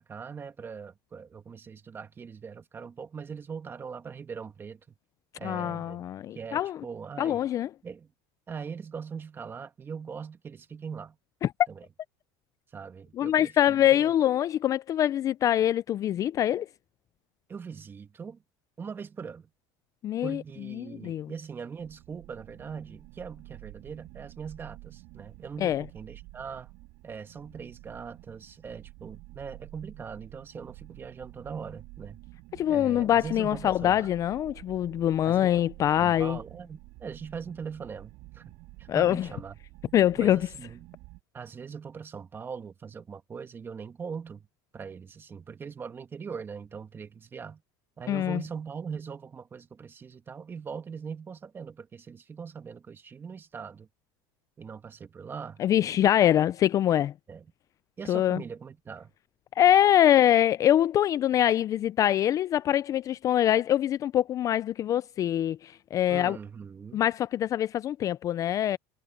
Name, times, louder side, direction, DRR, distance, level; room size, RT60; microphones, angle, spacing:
voice 1, 0.0-4.8 5.4-6.0 6.3-7.4 7.8-8.1 8.5-11.2 11.7-11.9 12.7-14.1 17.5-18.4 18.8-19.5 20.2-26.7 27.0-32.2 32.7-34.1 35.2-35.5 36.0-39.5 40.2-40.9 41.3-44.5 44.7-47.6 48.0-53.9 54.6-55.6 57.3-57.5 58.0-59.1 66.1-67.0, right 6 dB, 25° right, 2.1 m, -41 dB
voice 2, 5.4-6.8 7.2-7.7 11.4-11.5 13.2-16.7 20.0-20.4 20.8-21.3 25.6-25.8 32.5-36.4 38.9-39.3 39.9-40.4 48.1-48.4 55.6-57.1 58.1-58.4 59.6-66.4 66.9-68.8, left 11 dB, 35° left, 0.4 m, -24 dB
sound 1, 21.8-41.2, right 23 dB, 65° right, 5.8 m, -49 dB
supercardioid pair, 130°, 10 cm